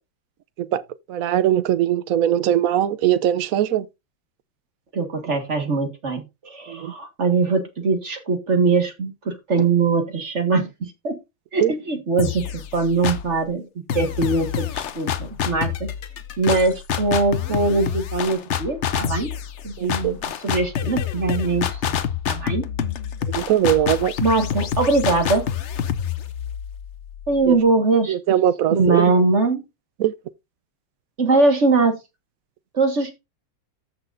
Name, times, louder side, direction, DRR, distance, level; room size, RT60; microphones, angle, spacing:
voice 1, 1.1-3.9 6.7-6.9 11.6-11.7 19.8-20.1 23.3-24.1 27.5-27.6 28.1-29.0 30.0-30.1, right 11 dB, 65° right, 0.9 m, -20 dB
voice 2, 4.9-11.2 11.5-12.5 12.7-15.9 16.4-19.3 19.6-22.0 22.3-22.6 24.2-25.5 27.3-28.2 28.7-29.6 31.2-32.0 32.7-33.2, right 3 dB, 40° right, 1.9 m, -21 dB
sound 1, 12.2-13.4 13.9-27.6, left 9 dB, 55° left, 0.8 m, -27 dB
14.0 x 6.1 x 2.6 m
omnidirectional pair, 2.0 m